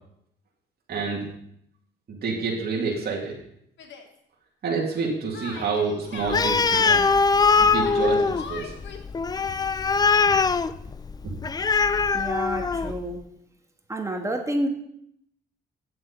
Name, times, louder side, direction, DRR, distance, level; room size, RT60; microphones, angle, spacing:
voice 1, 0.9-1.2 2.1-3.4 4.6-7.0 7.6-8.7 11.2-11.3, right 4 dB, 55° right, -3 dB, 2.4 m, -28 dB
Yell, 3.8-4.1 5.3-7.0 7.8-9.0, left 5 dB, 70° left, 1.4 m, -40 dB
Animal, 6.3-13.0, left 4 dB, 20° left, 0.3 m, -22 dB
voice 2, 12.1-13.2 13.9-14.7, right 1 dB, 15° right, 3 dB, 1.6 m, -29 dB
8.4 x 7.6 x 5.4 m, 0.74 s
cardioid pair, 90°, 20 cm